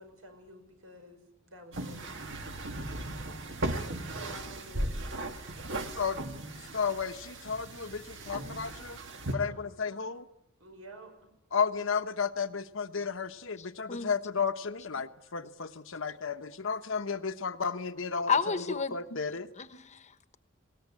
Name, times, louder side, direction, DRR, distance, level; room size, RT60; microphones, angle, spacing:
voice 1, 0.0-2.3 4.1-5.4 9.3-10.1 10.6-11.1 13.3-13.4 15.3-15.4 15.6-15.7, right 1 dB, 80° right, 5 dB, 5.6 m, -51 dB
sound 1, 1.7-9.3, right 1 dB, 60° right, 1.8 m, -37 dB
voice 2, 6.7-9.0 9.3-10.2 11.5-18.3 18.9-19.5, left 5 dB, 65° left, 9 dB, 1.0 m, -33 dB
voice 3, 13.6-14.2 14.9-15.0 18.3-19.0 19.3-20.4, left 5 dB, 35° left, 11 dB, 1.1 m, -33 dB
20.5 x 18.0 x 9.9 m, 0.84 s
head